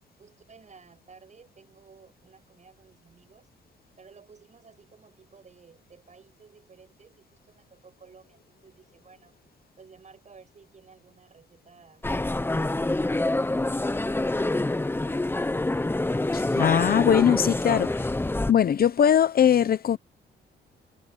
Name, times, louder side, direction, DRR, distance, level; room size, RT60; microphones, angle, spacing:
voice 1, 0.2-3.5 4.0-9.3 9.8-12.0, right 5 dB, 35° right, 7.5 m, -54 dB
sound 1, 12.0-18.5, left 2 dB, 10° left, 1.1 m, -26 dB
voice 2, 16.3-18.1 18.5-20.0, left 9 dB, 50° left, 0.8 m, -21 dB
cardioid pair, 90°, 20 cm